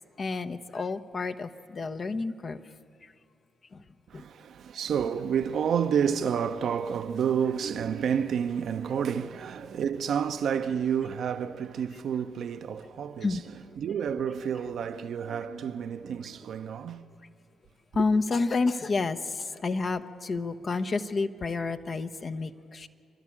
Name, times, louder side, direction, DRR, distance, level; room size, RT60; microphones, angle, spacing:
voice 1, 0.2-2.6 3.0-3.1 3.7-3.8 4.1-4.2 13.2-13.4 17.9-22.9, left 3 dB, 45° left, 0.9 m, -30 dB
voice 2, 4.1-13.3 13.8-17.1, right 7 dB, 65° right, 0.7 m, -29 dB
28.0 x 12.0 x 8.6 m
hypercardioid pair, 45°, 0 cm